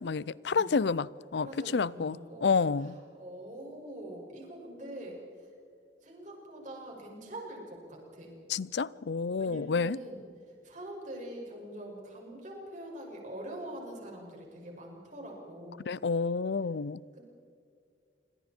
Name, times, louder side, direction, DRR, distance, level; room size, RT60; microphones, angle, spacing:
voice 1, 0.0-3.0 8.5-10.0 15.9-17.0, left 5 dB, 70° left, 0.5 m, -29 dB
voice 2, 1.4-2.5 3.1-5.2 6.0-7.6 7.9-8.3 9.4-10.2 10.6-15.8 17.2-17.3, right 1 dB, 45° right, 6.0 m, -44 dB
27.0 x 25.0 x 4.5 m
head